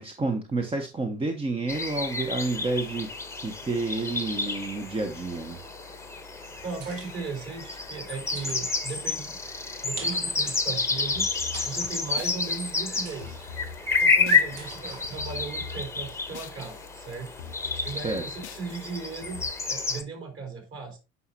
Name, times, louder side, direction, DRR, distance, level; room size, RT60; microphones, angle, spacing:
voice 1, 0.0-5.6 18.0-18.2, right 3 dB, 15° right, 5 dB, 1.0 m, -30 dB
sound 1, 1.7-20.0, left 4 dB, 10° left, 1.1 m, -30 dB
sound 2, 6.5-15.2, right 5 dB, 55° right, 1.9 m, -48 dB
voice 2, 6.6-9.4 9.8-11.3 11.6-13.4 14.0-17.3 17.8-21.0, right 5 dB, 40° right, 2 dB, 3.9 m, -37 dB
sound 3, 11.1-14.8 15.0-16.9 17.1-19.5, left 6 dB, 75° left, 0.7 m, -43 dB
9.4 x 5.7 x 2.8 m, 0.29 s
figure-of-eight pair, 70°, 34 cm